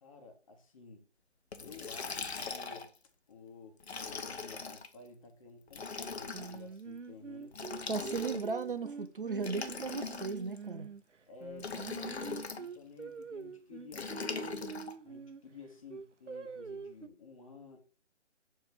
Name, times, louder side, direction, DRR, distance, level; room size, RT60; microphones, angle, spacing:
voice 1, 0.0-1.1 1.6-2.9 3.3-8.3 11.3-14.7 15.1-17.8, left 4 dB, 30° left, 1.2 m, -53 dB
Liquid, 1.5-3.0 3.8-4.9 5.7-6.6 7.5-8.6 9.4-10.6 11.6-12.6 13.9-14.9, left 4 dB, 60° left, 1.0 m, -40 dB
Singing, 6.3-11.0 11.4-15.4 15.9-17.1, right 5 dB, 90° right, 0.6 m, -45 dB
voice 2, 7.9-10.9, right 4 dB, 50° right, 0.6 m, -36 dB
7.2 x 3.2 x 5.1 m
figure-of-eight pair, 150°, 35 cm